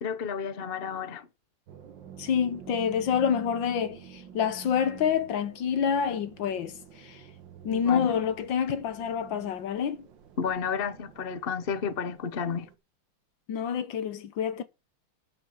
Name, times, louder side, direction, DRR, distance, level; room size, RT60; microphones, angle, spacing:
voice 1, 0.0-1.3 7.7-8.1 10.4-12.7, left 6 dB, 40° left, 0.8 m, -31 dB
sound 1, 1.7-12.8, right 8 dB, 60° right, 1.8 m, -49 dB
voice 2, 2.2-7.2 7.6-10.1 13.5-14.6, left 8 dB, 65° left, 1.5 m, -27 dB
9.7 x 6.9 x 7.4 m
omnidirectional pair, 2.4 m